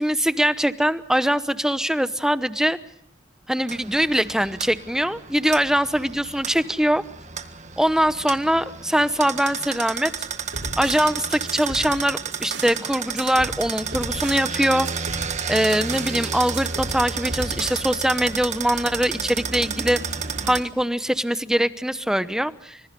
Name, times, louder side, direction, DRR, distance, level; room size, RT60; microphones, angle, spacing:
voice 1, 0.0-2.8 3.5-7.0 7.8-10.1 10.8-14.9 15.5-20.0 20.4-22.8, equal, 5° right, 13 dB, 0.9 m, -22 dB
sound 1, 3.7-20.6, right 6 dB, 40° right, 1.7 m, -31 dB
sound 2, 10.2-12.8 13.2-14.5 14.8-16.2 16.5-18.0, right 2 dB, 70° right, 7.4 m, -36 dB
26.5 x 25.5 x 5.3 m, 0.77 s
head